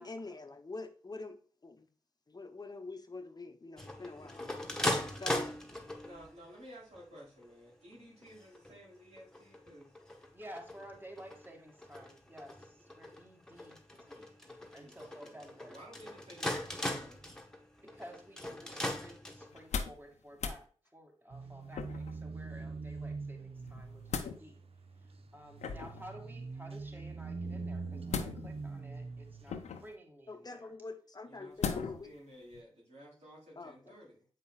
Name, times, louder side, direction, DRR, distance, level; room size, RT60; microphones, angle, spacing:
voice 1, 0.0-1.9 2.3-4.5 5.2-5.5 30.3-32.1 33.6-33.9, left 3 dB, 35° left, 7 dB, 0.8 m, -45 dB
sound 1, 3.8-6.3 6.9-7.4 7.9-8.0 8.2-8.8 9.2-19.7, left 1 dB, 5° left, 1.4 m, -39 dB
voice 2, 6.0-9.9 14.7-17.3 31.3-34.3, equal, 75° right, -4 dB, 3.4 m, -54 dB
voice 3, 10.3-13.8 14.1-14.3 14.7-15.8 17.8-24.6 25.0-30.7, equal, 20° right, 2 dB, 2.1 m, -53 dB
sound 2, 19.5-20.1 20.3-20.6 21.7-22.2 23.7-24.4 25.6-26.1 28.1-28.7 29.5-30.0 31.6-32.1 32.5-32.6, left 6 dB, 85° left, 0.7 m, -37 dB
sound 3, 21.3-29.7, right 4 dB, 60° right, 0.8 m, -43 dB
7.6 x 5.5 x 2.3 m, 0.41 s
supercardioid pair, 40°, 11 cm